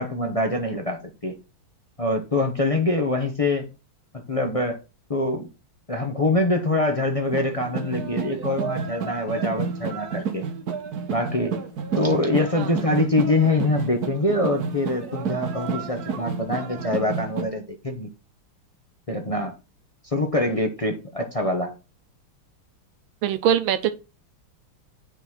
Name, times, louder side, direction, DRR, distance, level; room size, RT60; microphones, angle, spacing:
voice 1, 0.0-1.4 2.0-3.7 4.3-4.8 5.1-5.5 5.9-10.5 11.1-11.6 11.9-18.1 19.1-19.6 20.0-21.8, left 2 dB, 35° left, 0.5 m, -24 dB
sound 1, 7.3-17.4, right 6 dB, 55° right, 1.3 m, -30 dB
voice 2, 23.2-23.9, right 9 dB, 75° right, 1.6 m, -22 dB
8.2 x 4.1 x 6.0 m
omnidirectional pair, 2.3 m